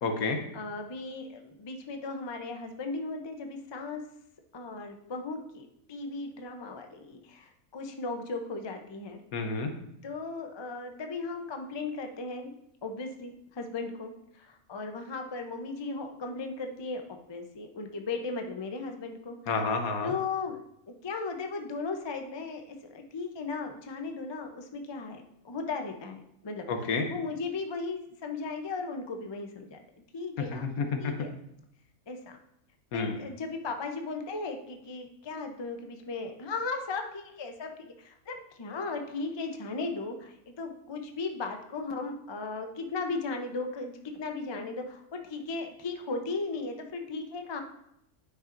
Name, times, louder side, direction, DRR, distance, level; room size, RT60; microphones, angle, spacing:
voice 1, 0.0-0.4 9.3-9.7 19.5-20.1 26.7-27.0 30.6-31.0 32.9-33.1, left 4 dB, 75° left, 5 dB, 1.3 m, -29 dB
voice 2, 0.5-4.0 4.5-9.2 10.0-12.5 12.8-17.0 17.3-19.6 20.0-20.6 20.9-26.6 27.1-29.8 30.1-30.7 31.0-31.3 32.1-32.4 32.9-47.6, left 3 dB, 35° left, 4 dB, 0.4 m, -36 dB
9.9 x 5.6 x 2.6 m, 0.77 s
omnidirectional pair, 1.5 m